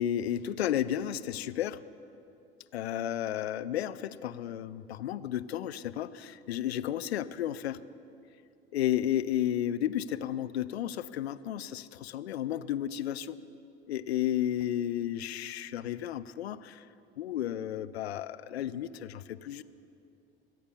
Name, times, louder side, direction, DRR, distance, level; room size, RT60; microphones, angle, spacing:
voice 1, 0.0-1.8 2.7-7.8 8.7-13.4 13.9-16.8 17.2-19.6, left 11 dB, 85° left, 14 dB, 0.5 m, -32 dB
23.5 x 8.5 x 6.9 m, 2.6 s
hypercardioid pair, 70°, 31 cm